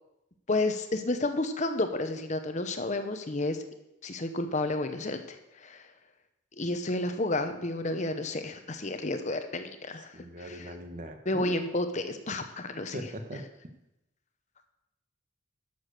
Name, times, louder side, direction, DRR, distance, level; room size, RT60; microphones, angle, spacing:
voice 1, 0.5-3.6 4.0-5.9 6.6-10.7 11.3-13.0, left 2 dB, 40° left, 8 dB, 0.9 m, -31 dB
voice 2, 10.1-11.5 12.9-13.4, right 1 dB, 40° right, 5 dB, 1.4 m, -40 dB
12.0 x 7.1 x 6.6 m, 0.89 s
head